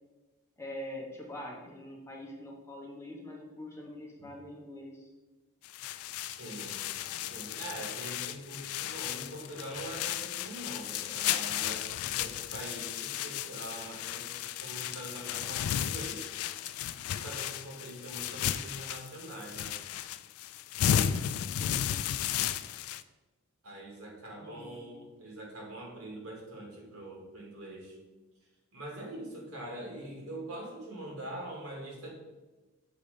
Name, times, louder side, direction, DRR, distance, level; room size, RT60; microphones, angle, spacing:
voice 1, 0.6-5.1 21.6-22.0 24.4-24.9, left 1 dB, 15° left, -1 dB, 1.1 m, -44 dB
sound 1, 5.6-23.0, left 10 dB, 85° left, 0.3 m, -34 dB
voice 2, 6.2-6.8 7.2-16.3 17.0-19.8 23.6-28.0 28.7-32.1, right 1 dB, 85° right, -2 dB, 2.2 m, -43 dB
6.9 x 3.9 x 5.0 m, 1.2 s
head